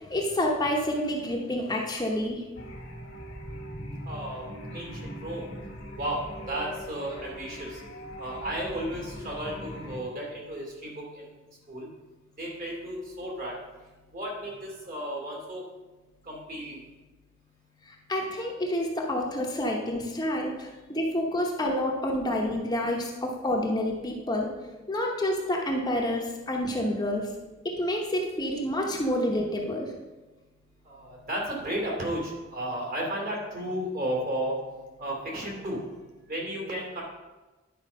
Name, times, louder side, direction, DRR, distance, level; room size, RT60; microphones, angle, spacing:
voice 1, 0.0-2.4 18.1-24.5 24.9-27.3 27.6-29.9, left 1 dB, 20° left, -1 dB, 0.9 m, -28 dB
sound 1, 2.5-10.0, equal, 85° left, 1.6 m, -41 dB
voice 2, 4.1-5.4 6.0-7.8 8.2-11.3 11.7-11.9 12.4-13.6 14.1-15.6 16.3-16.8 30.9-34.6 35.0-35.8 36.3-37.0, right 1 dB, 45° right, -2 dB, 2.5 m, -33 dB
10.0 x 4.6 x 5.5 m, 1.2 s
head